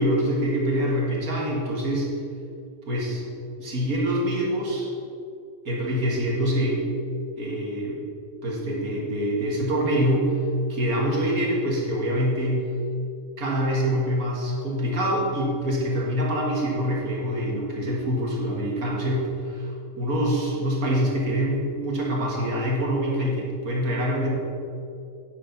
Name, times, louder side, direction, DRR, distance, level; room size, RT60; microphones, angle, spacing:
voice 1, 0.0-2.1 2.9-3.3 3.6-4.9 5.7-6.8 7.4-8.0 8.4-10.3 10.7-12.7 13.4-24.3, equal, 75° right, -3 dB, 2.1 m, -25 dB
9.8 x 6.8 x 5.8 m, 2.5 s
omnidirectional pair, 1.5 m